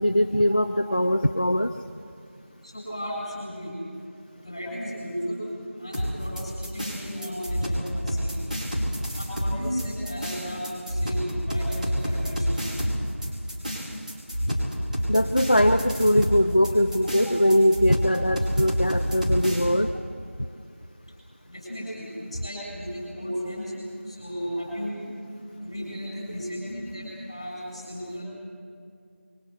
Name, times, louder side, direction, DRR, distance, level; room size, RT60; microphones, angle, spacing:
voice 1, 0.0-1.7 15.1-19.9, equal, 35° left, 7 dB, 0.6 m, -21 dB
voice 2, 2.6-3.7 4.4-5.4 5.8-8.3 9.2-12.6 17.1-17.2 18.0-18.1 19.0-19.1 21.5-23.7 24.1-25.0 25.6-28.3, equal, 20° left, -4 dB, 7.8 m, -35 dB
sound 1, 5.9-19.6, equal, 35° right, 5.0 m, -28 dB
27.5 x 23.0 x 6.5 m, 2.3 s
figure-of-eight pair, 180°, 7 cm